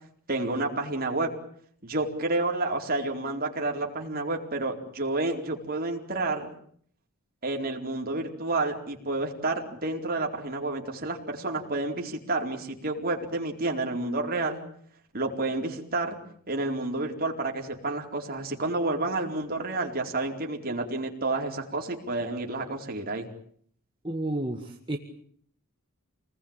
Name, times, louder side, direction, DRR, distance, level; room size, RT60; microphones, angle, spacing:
voice 1, 0.3-1.3 1.8-6.5 7.4-14.6 15.1-16.2 16.5-23.2, right 2 dB, 40° right, 2 dB, 4.3 m, -30 dB
voice 2, 24.0-25.0, right 1 dB, 20° right, 2 dB, 1.9 m, -31 dB
28.5 x 20.0 x 8.9 m, 0.62 s
head